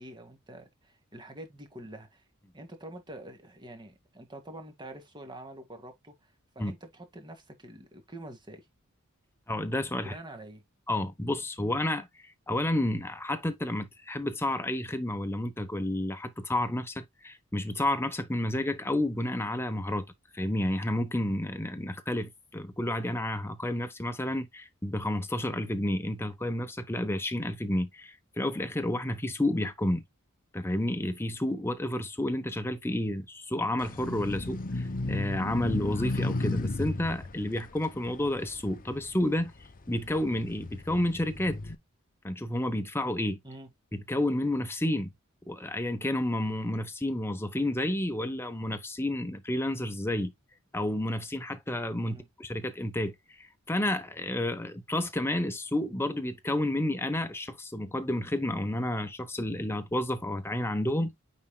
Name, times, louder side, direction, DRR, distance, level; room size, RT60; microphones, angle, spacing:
voice 1, 0.0-2.2 2.5-6.1 6.6-8.7 10.0-10.6 43.4-43.7 52.1-52.3, right 1 dB, 20° right, 1.9 m, -46 dB
voice 2, 9.5-10.1 10.9-20.1 20.3-30.0 30.5-39.5 39.9-41.7 42.2-43.4 43.9-45.1 45.5-50.3 50.7-61.1, left 1 dB, 10° left, 0.9 m, -30 dB
sound 1, 33.8-39.4 39.9-41.7, left 2 dB, 40° left, 0.8 m, -34 dB
9.6 x 4.3 x 2.2 m
head